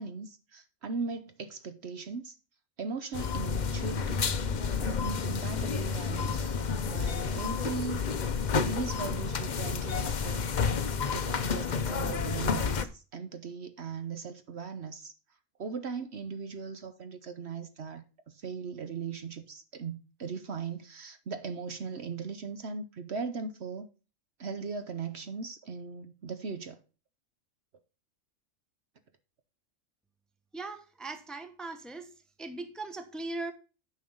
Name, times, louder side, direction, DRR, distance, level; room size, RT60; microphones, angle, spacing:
voice 1, 0.0-2.4 2.8-4.3 4.8-6.5 6.8-8.0 8.3-10.5 11.1-15.1 15.6-23.9 24.4-26.8, right 5 dB, 55° right, 1.0 m, -38 dB
sound 1, 3.1-12.9, left 5 dB, 45° left, 0.7 m, -30 dB
voice 2, 30.5-32.1 32.4-33.5, right 2 dB, ahead, 0.9 m, -39 dB
9.6 x 5.4 x 5.4 m
omnidirectional pair, 1.4 m